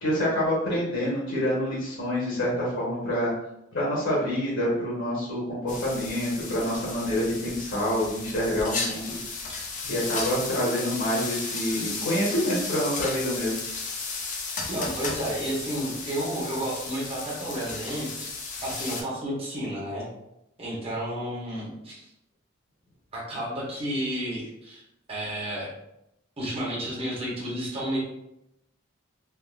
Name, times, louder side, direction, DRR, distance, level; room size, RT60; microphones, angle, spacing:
voice 1, 0.0-3.3 3.7-9.2 9.8-13.6, equal, 70° left, -6 dB, 1.0 m, -27 dB
sound 1, 5.7-19.0, left 4 dB, 40° left, 0.5 m, -34 dB
voice 2, 14.7-20.1 20.6-22.1 23.1-24.8 25.1-25.7 26.4-28.0, right 1 dB, 30° right, -6 dB, 0.9 m, -31 dB
3.4 x 2.4 x 2.4 m, 0.84 s
head